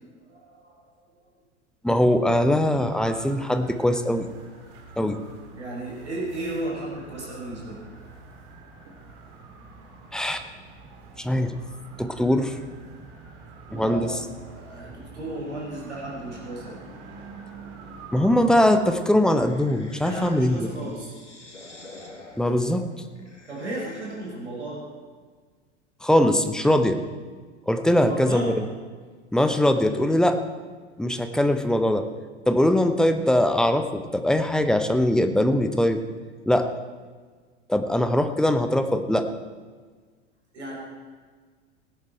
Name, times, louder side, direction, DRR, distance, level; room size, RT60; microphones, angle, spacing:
voice 1, 0.3-1.1 5.5-7.8 13.7-16.8 20.0-21.1 23.5-24.9 27.9-28.6 40.5-40.8, right 1 dB, 75° right, -4 dB, 5.0 m, -34 dB
voice 2, 1.8-4.3 5.0-5.2 10.1-10.4 11.2-11.6 12.0-12.6 13.7-14.1 18.1-20.7 22.4-22.9 26.0-27.0 27.7-28.5 29.3-30.4 31.0-32.0 32.5-36.0 36.5-36.7 37.7-39.3, left 1 dB, ahead, 8 dB, 0.8 m, -21 dB
sound 1, 2.8-19.1, right 3 dB, 50° right, 2.4 m, -46 dB
sound 2, 18.9-24.4, left 2 dB, 85° left, 1.9 m, -45 dB
17.5 x 10.0 x 4.5 m, 1.5 s
figure-of-eight pair, 85°, 35 cm